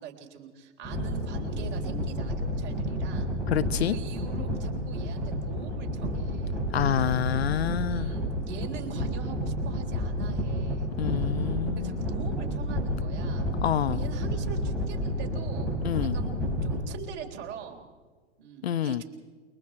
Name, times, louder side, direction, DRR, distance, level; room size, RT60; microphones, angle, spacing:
voice 1, 0.0-3.3 3.9-6.6 7.9-10.9 11.8-13.5 13.9-15.7 16.1-16.3 16.6-17.8 18.4-19.0, right 7 dB, 30° right, 2 dB, 3.8 m, -43 dB
sound 1, 0.8-16.8, equal, ahead, 6.0 m, -30 dB
voice 2, 3.5-3.9 6.7-8.1 11.0-12.1 13.6-14.0 15.8-16.2 18.6-19.0, left 10 dB, 60° left, 15 dB, 0.8 m, -27 dB
28.5 x 24.0 x 4.6 m, 1.5 s
figure-of-eight pair, 110°, 36 cm